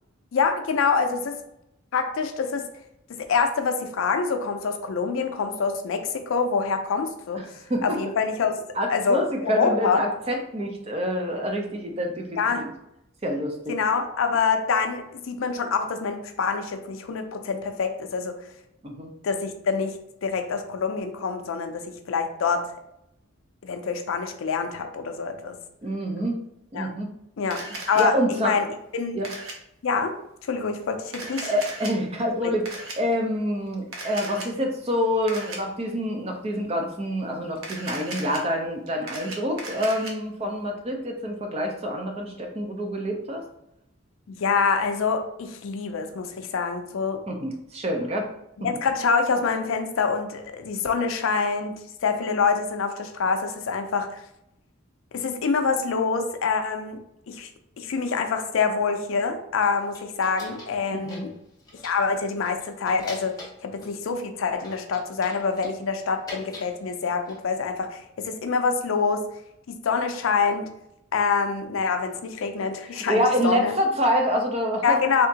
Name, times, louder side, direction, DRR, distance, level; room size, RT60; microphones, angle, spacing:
voice 1, 0.3-1.4 1.9-2.7 3.3-7.4 7.8-8.6 8.9-10.0 12.4-12.7 13.7-18.4 19.2-22.7 23.6-25.6 26.7-26.9 27.4-28.7 28.9-29.2 29.8-30.1 30.5-31.5 44.3-47.2 48.6-54.2 55.1-57.0 57.3-57.5 57.8-61.3 61.8-63.4 63.6-69.2 69.7-70.7 71.1-73.8 74.8-75.3, left 5 dB, 75° left, 7 dB, 0.4 m, -26 dB
voice 2, 7.7-8.0 8.7-12.7 13.2-13.7 18.8-19.1 25.8-26.4 26.7-27.1 28.0-28.6 29.1-29.3 31.4-32.7 33.0-43.4 47.3-48.3 48.6-48.7 60.9-61.2 72.9-75.0, equal, 30° right, 2 dB, 0.5 m, -27 dB
Camera, 27.5-28.0 29.2-29.5 31.1-31.9 32.7-33.0 33.9-34.5 35.3-35.6 37.6-38.4 38.9-40.1, right 2 dB, 80° right, 0.7 m, -36 dB
sound 1, 59.6-60.8 61.1-62.1 62.4-64.0 64.6-66.7 67.0-67.6, left 2 dB, 15° left, 0.6 m, -44 dB
3.4 x 2.8 x 2.7 m, 0.80 s
head